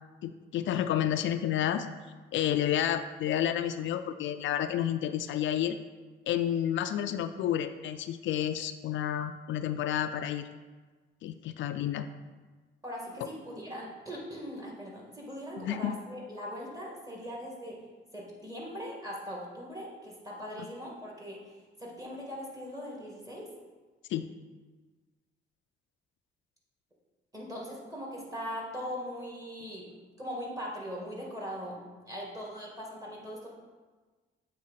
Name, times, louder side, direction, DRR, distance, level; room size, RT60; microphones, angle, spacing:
voice 1, 0.2-1.9 2.3-5.8 6.3-10.5 11.2-12.1 15.6-15.9 24.1-24.3, left 10 dB, 70° left, 9 dB, 0.4 m, -30 dB
voice 2, 12.8-17.8 18.1-21.4 21.8-23.5 27.3-29.9 30.2-33.5, equal, 15° right, -3 dB, 2.2 m, -40 dB
7.6 x 3.6 x 5.7 m, 1.3 s
cardioid pair, 90°, 20 cm